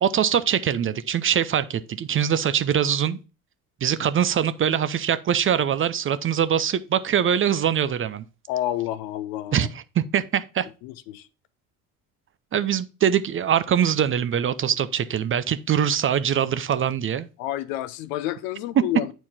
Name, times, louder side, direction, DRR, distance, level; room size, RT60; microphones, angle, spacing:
voice 1, 0.0-3.2 3.8-8.2 9.5-10.7 12.5-17.3 18.8-18.9, right 9 dB, 30° right, 0.5 m, -23 dB
voice 2, 8.5-9.7 10.8-11.3 17.4-19.1, left 13 dB, 70° left, 0.7 m, -29 dB
8.5 x 4.5 x 4.1 m
hypercardioid pair, 60°, 42 cm